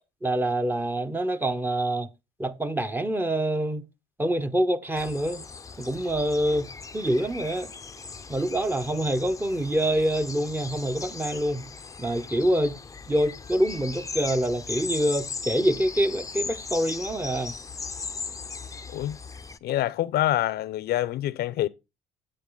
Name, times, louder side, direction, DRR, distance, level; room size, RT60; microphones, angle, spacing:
voice 1, 0.2-2.1 2.4-3.8 4.2-5.4 5.8-7.7 8.3-11.7 12.0-12.8 13.1-17.5, right 1 dB, 10° right, 0.9 m, -26 dB
sound 1, 5.0-19.6, left 4 dB, 20° left, 0.6 m, -38 dB
voice 2, 19.6-21.7, left 14 dB, 70° left, 0.7 m, -26 dB
10.0 x 8.2 x 3.9 m
cardioid pair, 110°, 17 cm